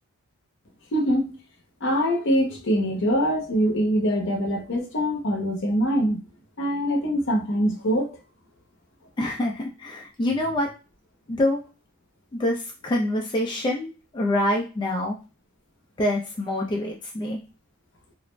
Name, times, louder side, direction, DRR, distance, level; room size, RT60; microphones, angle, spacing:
voice 1, 0.9-1.4 1.8-6.2 6.6-8.2, equal, 60° left, 2 dB, 0.7 m, -23 dB
voice 2, 9.2-10.7 11.3-11.6 12.3-15.2 16.0-17.4, left 1 dB, 20° left, -1 dB, 0.3 m, -26 dB
2.5 x 2.0 x 3.1 m, 0.32 s
head